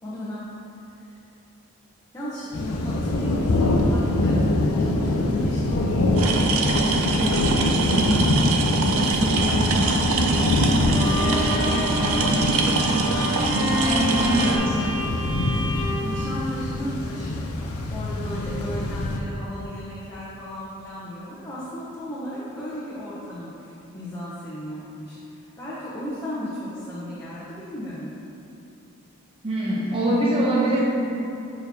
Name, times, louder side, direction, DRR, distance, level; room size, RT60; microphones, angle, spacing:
voice 1, 0.0-0.5 0.9-1.0 2.1-14.7 15.0-15.1 16.0-28.1, equal, 15° left, -11 dB, 0.9 m, -36 dB
sound 1, 2.5-19.2, left 1 dB, 85° left, 0.5 m, -24 dB
sound 2, 6.2-14.6, right 3 dB, 80° right, 0.6 m, -24 dB
Bowed string instrument, 10.9-17.1, left 1 dB, 60° left, 1.4 m, -29 dB
voice 2, 13.7-14.7 29.4-30.8, right 1 dB, 25° right, -6 dB, 0.7 m, -23 dB
6.7 x 5.9 x 2.7 m, 2.7 s
head